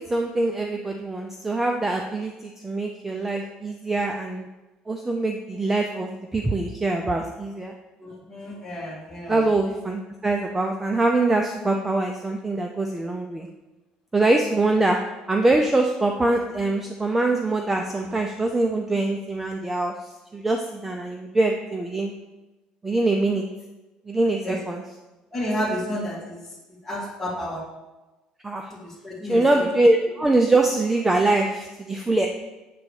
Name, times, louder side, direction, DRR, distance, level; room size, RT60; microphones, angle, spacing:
voice 1, 0.0-4.5 4.9-7.7 9.3-13.5 14.1-15.0 15.3-19.9 20.3-22.1 22.8-23.4 24.1-24.8 28.4-28.7 29.3-32.3, right 2 dB, 10° right, 3 dB, 0.5 m, -23 dB
voice 2, 8.0-9.4 24.4-24.6 25.3-26.4 26.8-27.6 28.7-29.6, equal, 15° left, -4 dB, 2.3 m, -31 dB
8.4 x 3.9 x 6.3 m, 1.1 s
cardioid pair, 150°, 2 cm